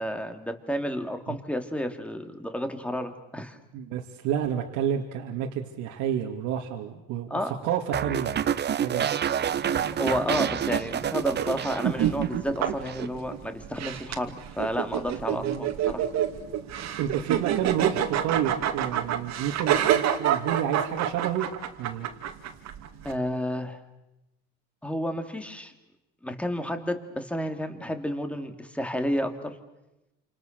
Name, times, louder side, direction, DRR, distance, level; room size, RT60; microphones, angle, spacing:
voice 1, 0.0-3.6 7.3-7.5 9.6-16.1 23.0-23.8 24.8-25.7 26.2-29.6, equal, 5° left, 6 dB, 2.8 m, -31 dB
voice 2, 3.7-8.4 8.8-9.1 15.4-15.7 17.0-21.5 21.8-22.1, right 9 dB, 75° right, 1 dB, 2.7 m, -30 dB
sound 1, 7.9-12.4 12.6-13.1, right 9 dB, 35° right, 0.9 m, -28 dB
sound 2, 9.5-23.1, right 10 dB, 60° right, 2.7 m, -29 dB
28.5 x 27.5 x 6.8 m, 0.94 s
cardioid pair, 110°, 30 cm